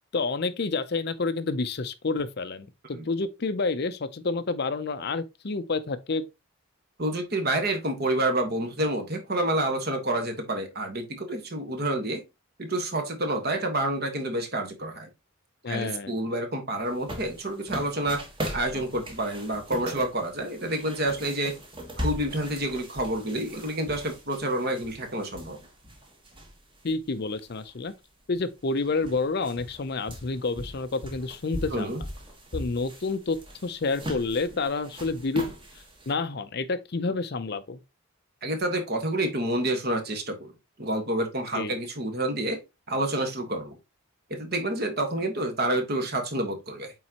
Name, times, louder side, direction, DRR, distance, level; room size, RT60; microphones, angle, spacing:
voice 1, 0.1-6.2 15.6-16.1 26.8-27.9 28.3-31.9 32.5-33.4 33.6-35.5 36.1-37.8 41.5-41.7, left 3 dB, 45° left, 0.5 m, -29 dB
voice 2, 7.0-12.2 12.6-15.1 15.7-18.2 18.5-21.5 22.0-25.6 31.7-32.0 38.4-40.5 40.8-42.6 42.9-43.8 44.3-46.9, right 1 dB, 45° right, 1.4 m, -28 dB
sound 1, 16.8-26.9 27.3-27.4 28.3-28.4 28.7-36.1, equal, 20° right, 1.3 m, -39 dB
8.5 x 3.8 x 2.9 m
head